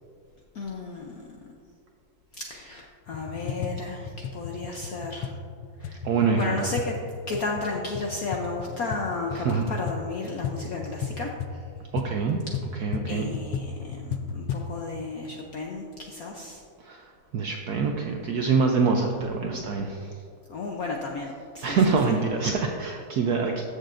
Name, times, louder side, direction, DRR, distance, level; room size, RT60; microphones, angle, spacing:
voice 1, 0.5-1.3 2.3-5.3 5.8-6.0 6.4-7.0 7.3-11.3 13.1-16.6 20.5-21.8, left 3 dB, 70° left, 0 dB, 0.8 m, -33 dB
sound 1, 3.1-14.7, left 6 dB, 90° left, 1.5 m, -35 dB
voice 2, 6.0-6.7 9.3-9.6 11.9-12.4 12.8-13.3 16.8-17.0 17.3-20.1 21.6-23.6, right 5 dB, 75° right, 2 dB, 0.9 m, -25 dB
14.0 x 6.5 x 2.5 m, 2.4 s
omnidirectional pair, 2.3 m